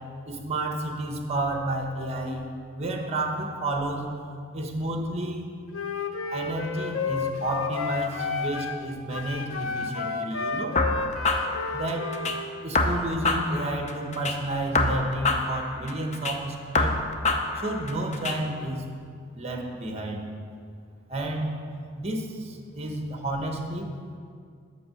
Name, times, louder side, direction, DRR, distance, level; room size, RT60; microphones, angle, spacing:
voice 1, 0.3-2.5 2.8-4.1 4.5-5.5 6.3-10.8 11.7-12.1 12.6-16.9 17.5-18.9 19.3-20.2 21.1-21.6 22.0-23.9, right 1 dB, 30° right, 2 dB, 1.0 m, -31 dB
Wind instrument woodwind instrument, 5.7-8.8 9.1-12.5, left 4 dB, 90° left, 0.6 m, -31 dB
sound 1, 10.8-12.4 12.7-14.4 14.7-16.4 16.7-18.4, left 2 dB, 35° left, 0.6 m, -26 dB
7.6 x 6.8 x 5.7 m, 2.2 s
head